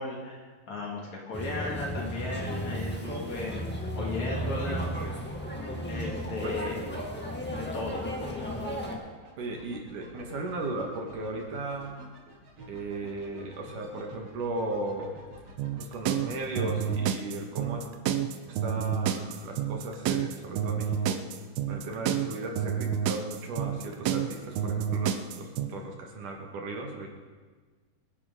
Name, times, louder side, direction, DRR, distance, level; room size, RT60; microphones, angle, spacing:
voice 1, 0.0-4.9 5.9-6.8 7.5-8.5, left 3 dB, 55° left, -2 dB, 3.4 m, -36 dB
sound 1, 1.3-8.9, equal, 5° left, 1.0 m, -34 dB
sound 2, 6.4-16.9, right 1 dB, 45° right, 3.1 m, -51 dB
voice 2, 9.4-11.9 12.7-15.1 15.8-17.8 18.5-21.2 21.7-27.1, right 2 dB, 65° right, 1 dB, 3.1 m, -36 dB
sound 3, 15.6-25.7, right 9 dB, 85° right, 2.7 m, -29 dB
25.5 x 10.5 x 3.9 m, 1.4 s
omnidirectional pair, 4.2 m